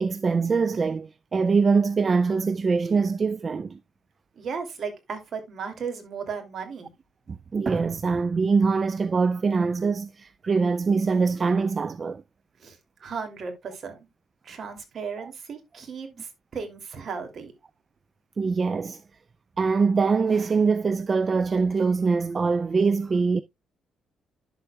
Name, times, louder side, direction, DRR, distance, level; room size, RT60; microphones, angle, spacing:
voice 1, 0.0-3.8 7.3-12.2 18.4-19.0 19.6-23.4, right 4 dB, 35° right, 0.4 m, -23 dB
voice 2, 4.4-6.9 12.6-14.1 14.4-17.5, right 5 dB, 55° right, 2.7 m, -35 dB
11.0 x 7.0 x 2.3 m
cardioid pair, 90°, 0 cm